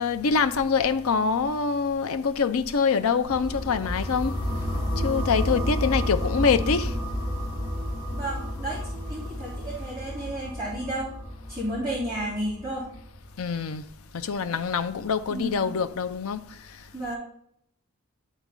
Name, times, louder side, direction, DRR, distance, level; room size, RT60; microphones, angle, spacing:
voice 1, 0.0-4.5 5.0-6.9 13.4-13.8 14.1-16.4, left 5 dB, 75° left, 0.5 m, -25 dB
sound 1, 3.2-13.2, equal, 15° left, 1.6 m, -31 dB
voice 2, 8.1-11.1 11.5-12.9 15.3-15.7 16.9-17.2, right 1 dB, 15° right, 3.2 m, -32 dB
12.0 x 4.1 x 3.7 m
head